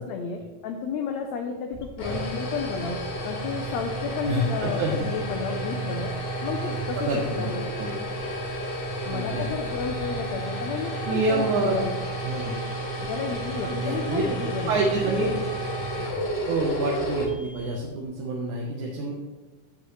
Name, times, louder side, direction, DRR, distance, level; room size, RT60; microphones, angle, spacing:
voice 1, 0.0-6.1 6.4-7.1 7.4-7.7 9.1-11.9 13.0-14.8, left 6 dB, 75° left, 3 dB, 1.7 m, -32 dB
sound 1, 1.7-17.9, right 1 dB, 45° left, 1.5 m, -31 dB
voice 2, 4.3-4.9 7.0-8.0 9.1-9.7 11.0-11.8 12.2-12.6 13.6-14.2 14.7-15.3 16.5-19.1, right 2 dB, 70° right, -1 dB, 2.3 m, -27 dB
16.0 x 5.4 x 3.2 m, 1.2 s
omnidirectional pair, 3.8 m